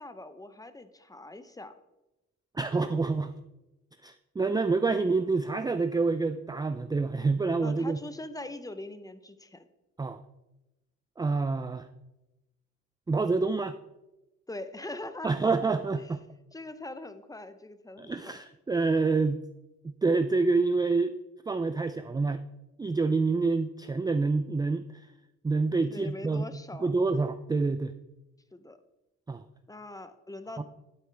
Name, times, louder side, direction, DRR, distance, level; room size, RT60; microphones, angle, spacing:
voice 1, 0.0-1.7 7.6-9.7 14.5-15.7 16.0-16.1 16.5-18.4 25.7-26.9 28.5-28.8 29.7-30.6, left 2 dB, 10° left, 11 dB, 0.8 m, -42 dB
voice 2, 2.5-3.4 4.0-8.0 10.0-10.2 11.2-11.9 13.1-13.8 15.2-16.2 18.0-19.4 19.8-21.1 21.5-22.4 22.8-24.8 25.4-26.4 26.8-27.9 29.3-29.4 30.6-30.7, right 3 dB, 15° right, 9 dB, 0.4 m, -27 dB
12.5 x 8.3 x 3.4 m, 0.97 s
cardioid pair, 90°, 30 cm